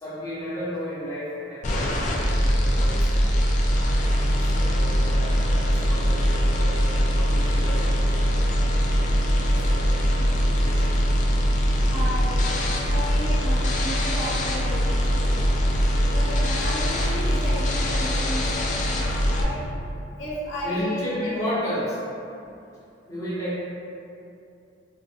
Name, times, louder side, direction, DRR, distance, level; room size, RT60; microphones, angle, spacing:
voice 1, 0.0-3.3 4.4-8.2 9.4-10.0 10.6-11.1 16.1-16.2 20.6-22.0 23.1-23.7, equal, 20° left, -10 dB, 0.9 m, -33 dB
sound 1, 1.6-19.4, equal, 40° left, 0.4 m, -22 dB
voice 2, 11.9-12.4 12.9-15.5 16.1-18.6 18.9-19.5 20.2-21.3, left 1 dB, 90° left, -6 dB, 0.7 m, -33 dB
3.7 x 2.5 x 2.4 m, 2.6 s
head